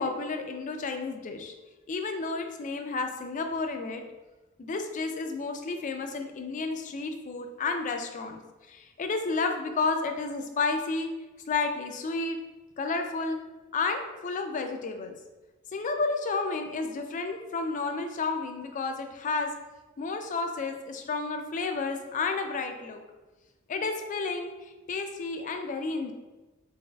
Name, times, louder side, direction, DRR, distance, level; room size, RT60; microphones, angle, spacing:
voice 1, 0.0-1.5 1.9-4.0 4.6-8.4 8.7-11.1 11.5-12.4 12.8-13.4 13.7-15.1 15.7-19.5 20.0-23.0 23.7-26.1, left 3 dB, 35° left, 5 dB, 0.4 m, -31 dB
4.0 x 3.9 x 2.3 m, 1.2 s
head